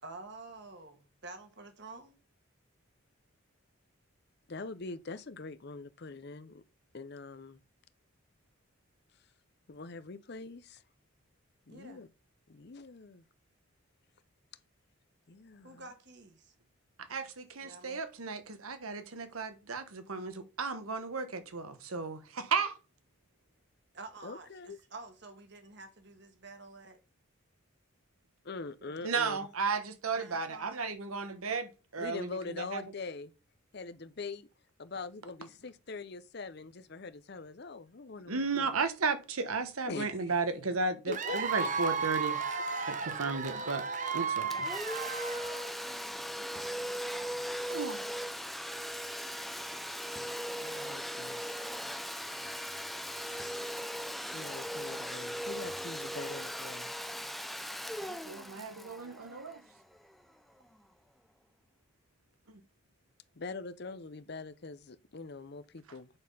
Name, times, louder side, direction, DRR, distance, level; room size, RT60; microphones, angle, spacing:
voice 1, 0.0-2.2 11.7-12.0 15.6-16.5 17.6-18.0 23.9-27.0 30.1-30.9 45.3-47.4, right 3 dB, 55° right, 1.5 m, -50 dB
voice 2, 4.5-6.6 6.9-7.6 9.7-10.8 11.7-12.1 12.5-13.2 15.3-15.8 24.2-24.8 28.4-29.4 32.0-33.3 33.7-34.5 34.8-38.7 39.9-40.3 41.1-41.7 50.6-51.6 53.2-53.8 54.2-57.2 63.4-66.1, left 3 dB, 50° left, 0.6 m, -43 dB
voice 3, 17.1-22.8 29.0-32.8 38.3-42.4 42.8-43.8 44.1-44.7 47.7-48.1 58.0-59.5, right 4 dB, 85° right, 1.2 m, -34 dB
Cheering / Applause / Crowd, 41.1-45.8, right 5 dB, 35° right, 0.7 m, -34 dB
Domestic sounds home sounds, 44.5-60.0, equal, ahead, 0.3 m, -39 dB
8.8 x 4.2 x 5.4 m
head